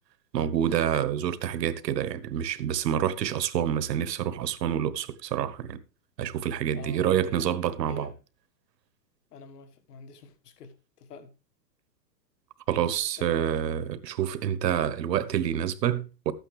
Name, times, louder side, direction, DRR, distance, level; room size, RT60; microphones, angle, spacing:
voice 1, 0.3-5.8 6.2-8.1 12.7-16.3, right 10 dB, 80° right, 1.2 m, -27 dB
voice 2, 6.7-7.5 7.8-8.1 9.3-10.7 11.1-11.3 13.2-13.7, left 4 dB, 70° left, 1.6 m, -46 dB
13.0 x 8.9 x 3.3 m
supercardioid pair, 170°, 49 cm